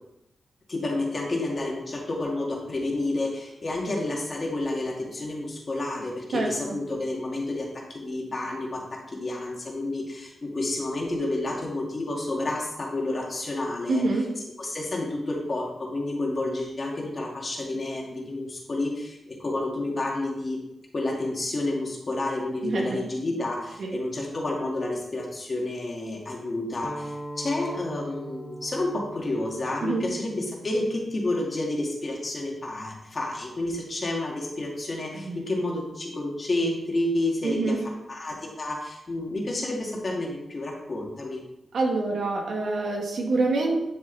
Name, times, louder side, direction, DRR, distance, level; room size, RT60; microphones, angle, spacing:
voice 1, 0.7-14.0 14.6-20.6 20.9-37.8 38.1-41.4, left 2 dB, 40° left, -1 dB, 2.4 m, -30 dB
voice 2, 6.3-6.8 13.9-14.3 22.6-23.0 23.8-23.9 29.8-30.0 35.1-35.4 37.4-37.8 41.7-43.8, right 3 dB, 75° right, 0 dB, 2.3 m, -26 dB
sound 1, 26.8-32.0, right 1 dB, ahead, 1.6 m, -42 dB
11.5 x 6.2 x 4.2 m, 0.87 s
wide cardioid pair, 95°, 0 cm